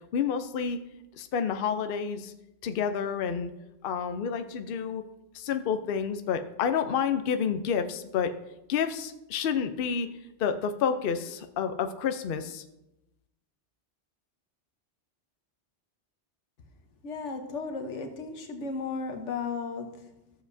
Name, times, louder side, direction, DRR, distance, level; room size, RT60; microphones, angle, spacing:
voice 1, 0.1-0.8 1.1-2.3 2.6-3.5 3.8-5.0 5.3-8.3 8.7-10.1 10.4-12.6, left 7 dB, 60° left, 8 dB, 0.7 m, -29 dB
voice 2, 17.0-20.3, left 4 dB, 85° left, 5 dB, 1.3 m, -35 dB
14.0 x 7.1 x 2.6 m, 0.91 s
omnidirectional pair, 1.2 m